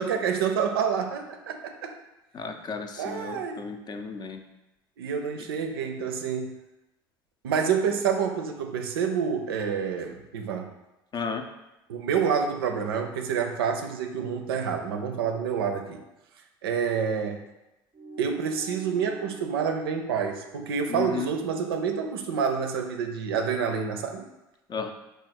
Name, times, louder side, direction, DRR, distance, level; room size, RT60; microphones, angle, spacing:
voice 1, 0.0-1.9 3.0-3.7 5.0-6.5 7.4-10.7 11.9-16.0 16.6-17.4 18.2-24.2, right 6 dB, 80° right, 5 dB, 0.4 m, -28 dB
voice 2, 2.3-4.4 11.1-11.5 20.9-21.3 24.7-24.9, left 5 dB, 35° left, 6 dB, 0.5 m, -34 dB
sound 1, 17.9-22.7, right 1 dB, 25° right, 0.5 m, -47 dB
3.7 x 2.4 x 4.3 m, 0.96 s
hypercardioid pair, 70°, 12 cm